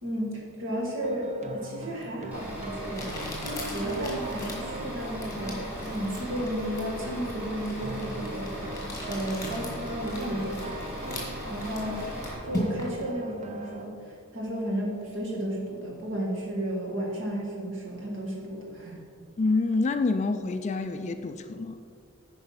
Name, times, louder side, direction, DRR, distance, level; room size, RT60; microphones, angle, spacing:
voice 1, 0.0-3.1 3.4-8.5 9.0-10.9 11.5-12.1 12.5-19.0, right 1 dB, 55° right, -2 dB, 2.0 m, -33 dB
sound 1, 1.0-13.8, right 2 dB, 30° right, 0.6 m, -40 dB
Crumpling crinkling, 2.0-2.1 2.9-13.0, left 1 dB, 15° left, 1.8 m, -39 dB
Bus / Idling, 2.3-12.3, equal, 10° right, 2.4 m, -39 dB
voice 2, 19.4-21.8, left 3 dB, 30° left, 8 dB, 0.3 m, -27 dB
9.2 x 5.3 x 5.7 m, 2.3 s
head